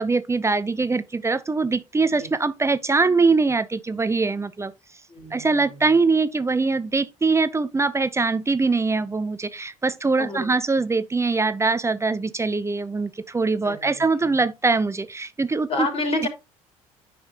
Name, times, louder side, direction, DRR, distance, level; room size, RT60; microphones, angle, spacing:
voice 1, 0.0-4.7 5.3-9.4 9.8-13.1 13.3-15.0 15.4-15.9 16.2-16.3, right 3 dB, 15° right, 0.7 m, -22 dB
voice 2, 5.1-5.6 10.2-10.5 13.6-14.0 15.7-16.3, left 2 dB, 35° left, 3.4 m, -28 dB
9.8 x 5.1 x 2.9 m
figure-of-eight pair, 55°, 18 cm